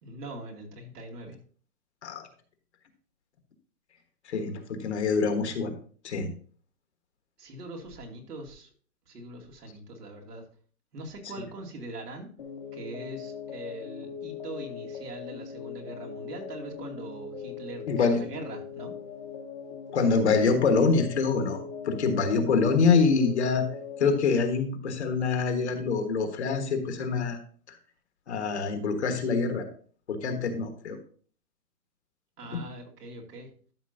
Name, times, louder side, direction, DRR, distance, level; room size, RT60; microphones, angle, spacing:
voice 1, 0.0-1.4 7.4-8.7 9.1-10.4 10.9-12.3 12.7-18.9 32.4-33.5, right 2 dB, 85° right, 1 dB, 2.6 m, -42 dB
voice 2, 4.3-5.7 6.0-6.3 17.9-18.2 19.9-23.6 24.0-27.4 27.7-27.8 28.3-29.7 30.1-31.0 32.5-32.6, left 4 dB, 45° left, 6 dB, 1.4 m, -25 dB
sound 1, 12.4-24.1, left 6 dB, 30° left, 1.0 m, -40 dB
12.5 x 6.0 x 2.7 m, 0.43 s
hypercardioid pair, 180°, 46 cm